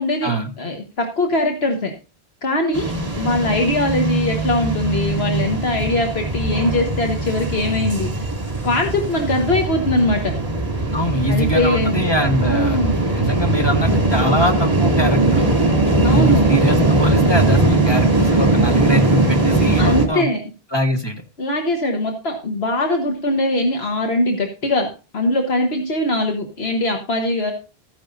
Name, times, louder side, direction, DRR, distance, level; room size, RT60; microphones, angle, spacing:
voice 1, 0.0-0.3 0.6-1.9 2.4-8.3 8.6-10.3 11.3-12.0 12.4-13.0 16.0-16.4 19.8-20.4 21.4-24.9 25.1-27.5, left 1 dB, 75° left, 3 dB, 1.6 m, -21 dB
sound 1, 2.7-20.1, right 2 dB, 35° right, 2.8 m, -19 dB
voice 2, 10.9-12.8 13.2-15.5 15.9-20.2 20.7-21.2, equal, 25° left, 3 dB, 1.6 m, -22 dB
14.0 x 10.0 x 2.7 m, 0.32 s
omnidirectional pair, 1.1 m